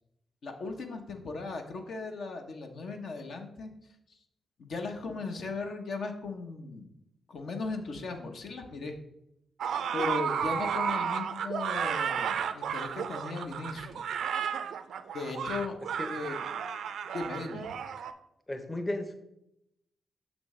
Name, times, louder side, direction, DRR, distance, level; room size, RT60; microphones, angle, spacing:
voice 1, 0.4-3.7 4.6-6.9 7.3-9.0 9.9-14.0 15.1-15.8 16.1-16.4 17.1-17.7, left 3 dB, 70° left, 4 dB, 0.8 m, -37 dB
sound 1, 9.6-18.1, right 7 dB, 85° right, 0.4 m, -33 dB
voice 2, 18.5-19.1, left 1 dB, 20° left, 7 dB, 0.7 m, -34 dB
6.4 x 6.1 x 3.2 m, 0.82 s
cardioid pair, 80°, 0 cm